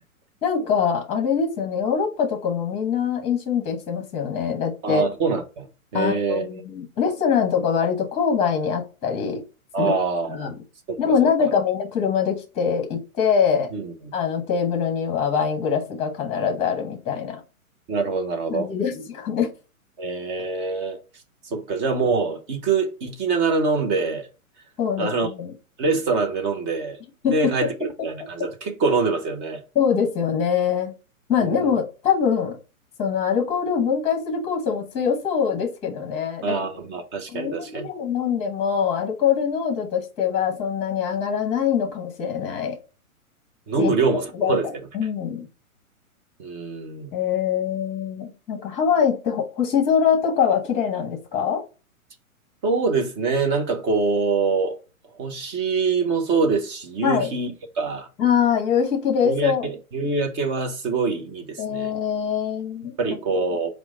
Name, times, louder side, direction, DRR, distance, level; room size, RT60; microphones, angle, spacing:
voice 1, 0.4-5.0 5.9-9.4 9.8-9.9 10.3-10.6 11.0-13.7 14.1-17.4 18.5-19.5 24.8-25.5 27.2-27.7 28.0-28.1 29.7-30.9 31.3-32.6 33.0-36.5 37.3-42.8 43.8-43.9 44.3-44.6 44.9-45.5 47.1-51.6 57.0-57.3 58.2-59.7 61.6-62.9 63.3-63.4, left 7 dB, 15° left, 0.9 m, -23 dB
voice 2, 4.8-5.7 5.9-6.5 9.7-10.5 10.9-11.0 11.4-11.5 13.7-14.1 17.9-18.7 20.0-21.0 21.4-24.3 25.0-25.3 25.8-27.0 27.3-29.6 31.4-31.8 36.4-37.9 43.7-44.7 46.4-47.1 52.6-54.8 55.2-58.1 59.2-61.9 63.0-63.7, right 4 dB, 20° right, 0.5 m, -24 dB
4.5 x 2.1 x 3.6 m
hypercardioid pair, 125°, 43 cm